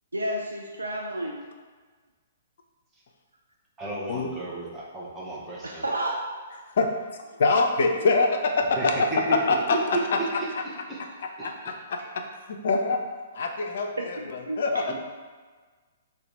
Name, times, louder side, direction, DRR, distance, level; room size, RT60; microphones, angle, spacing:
voice 1, 0.1-1.4 5.6-6.2 11.4-11.5 14.2-14.8, right 1 dB, 80° right, -1 dB, 0.3 m, -31 dB
voice 2, 3.8-5.9 8.8-9.4 9.9-11.0 11.7-11.8 14.9-15.0, right 2 dB, 15° right, -6 dB, 0.7 m, -33 dB
voice 3, 6.8-9.1 9.5-10.2 11.4-12.2 12.5-13.0 13.3-14.9, left 3 dB, 55° left, 4 dB, 0.4 m, -25 dB
2.8 x 2.1 x 3.7 m, 1.4 s
figure-of-eight pair, 120°, 0 cm